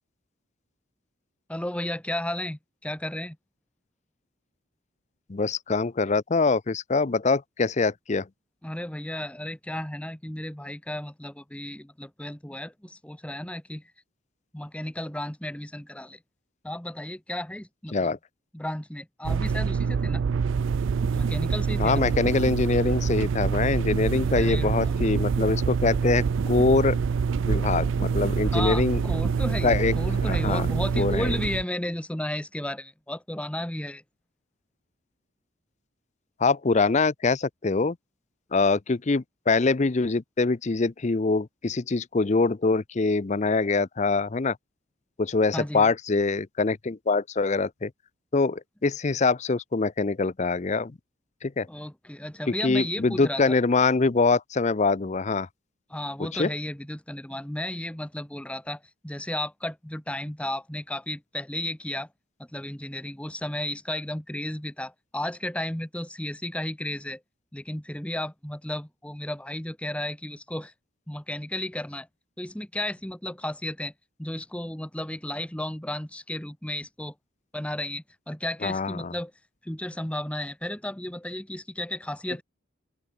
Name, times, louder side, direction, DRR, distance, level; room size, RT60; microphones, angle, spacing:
voice 1, 1.5-3.4 8.6-13.8 14.5-16.2 16.6-18.1 18.5-20.2 21.1-22.0 24.2-25.0 28.4-34.0 45.5-45.9 51.7-53.6 55.9-62.1 62.5-67.2 67.5-70.7 71.1-72.1 72.4-73.9 74.2-77.1 77.5-79.3 79.6-82.4, left 1 dB, 5° left, 1.0 m, -33 dB
voice 2, 5.3-8.3 17.9-18.2 21.8-27.0 27.5-29.0 29.6-29.9 30.3-30.7 31.0-31.3 36.4-38.0 38.5-44.6 45.2-47.9 48.3-50.9 51.4-51.7 52.6-55.5 56.2-56.5 78.6-79.1, left 3 dB, 35° left, 0.5 m, -24 dB
sound 1, 19.2-31.6, right 5 dB, 65° right, 0.4 m, -26 dB
open air
head